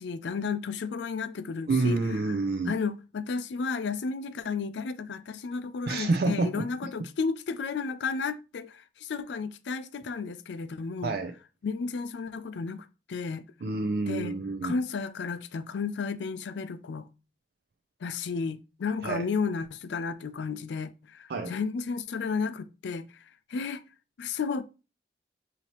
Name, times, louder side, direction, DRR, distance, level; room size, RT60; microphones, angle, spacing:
voice 1, 0.0-2.0 2.7-11.2 11.6-13.5 14.1-14.3 14.6-17.1 18.0-23.2 23.5-23.8 24.2-24.6, left 5 dB, 75° left, 0.4 m, -33 dB
voice 2, 1.7-2.7 5.9-6.7 11.0-11.3 13.6-14.7 19.0-19.3 21.3-21.5, right 3 dB, 60° right, 0.4 m, -28 dB
5.6 x 2.8 x 3.0 m
head